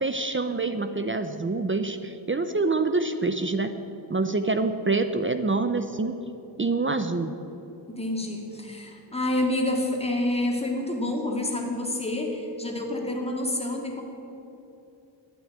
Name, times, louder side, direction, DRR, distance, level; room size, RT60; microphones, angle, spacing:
voice 1, 0.0-3.7 4.1-6.2 6.6-7.4, right 3 dB, 25° right, 9 dB, 0.6 m, -26 dB
voice 2, 7.9-14.0, left 1 dB, 15° left, 0 dB, 2.2 m, -28 dB
11.5 x 9.4 x 9.8 m, 2.9 s
wide cardioid pair, 145°, 46 cm